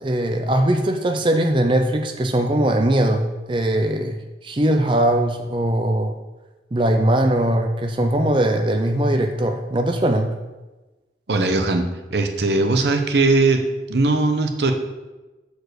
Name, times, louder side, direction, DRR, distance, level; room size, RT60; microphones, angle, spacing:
voice 1, 0.0-6.2 6.7-10.3, right 1 dB, 30° right, 5 dB, 0.5 m, -20 dB
voice 2, 11.3-14.7, right 3 dB, 75° right, 6 dB, 0.9 m, -20 dB
6.6 x 4.7 x 6.4 m, 1.1 s
head